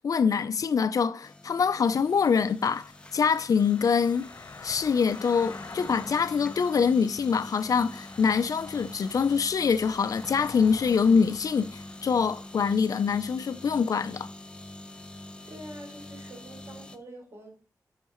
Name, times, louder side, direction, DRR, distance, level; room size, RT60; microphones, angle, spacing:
voice 1, 0.0-4.3 4.6-14.3, left 6 dB, 65° left, 0.5 m, -25 dB
sound 1, 1.2-17.0, left 1 dB, 15° left, 0.7 m, -45 dB
sound 2, 1.8-16.3 16.7-16.8, left 4 dB, 45° left, 1.2 m, -49 dB
voice 2, 15.5-17.5, right 1 dB, 45° right, 4.9 m, -45 dB
11.0 x 6.6 x 3.0 m
wide cardioid pair, 110°, 6 cm